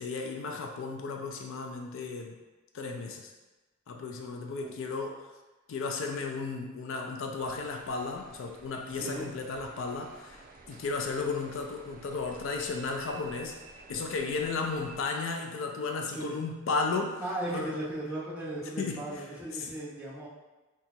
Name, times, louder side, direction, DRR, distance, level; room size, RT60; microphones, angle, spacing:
voice 1, 0.0-2.4 2.7-3.3 3.9-5.3 5.7-13.6 13.9-17.2 17.5-17.8 18.8-19.2 19.5-19.7, left 4 dB, 65° left, 3 dB, 0.4 m, -34 dB
sound 1, 7.4-15.1, right 3 dB, 40° right, 0.4 m, -52 dB
voice 2, 8.9-9.3 16.1-16.3 17.2-20.3, right 1 dB, 5° right, -9 dB, 0.9 m, -36 dB
2.9 x 2.3 x 4.2 m, 1.2 s
head